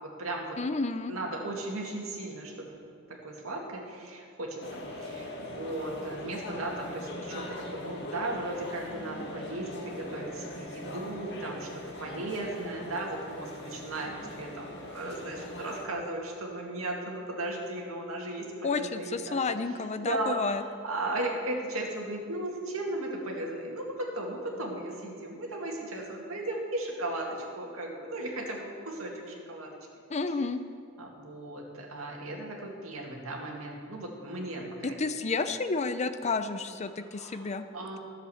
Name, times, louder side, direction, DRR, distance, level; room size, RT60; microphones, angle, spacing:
voice 1, 0.0-0.6 1.1-2.8 3.1-11.7 12.0-14.1 14.4-19.4 20.0-29.8 31.0-34.6 37.1-37.5 37.7-38.0, right 1 dB, 90° right, 0 dB, 2.1 m, -36 dB
voice 2, 0.6-1.1 18.6-20.6 30.1-30.6 34.8-37.6, left 4 dB, 35° left, 10 dB, 0.5 m, -31 dB
sound 1, 4.6-15.9, left 1 dB, 55° left, 1.8 m, -41 dB
13.0 x 7.5 x 7.1 m, 2.3 s
head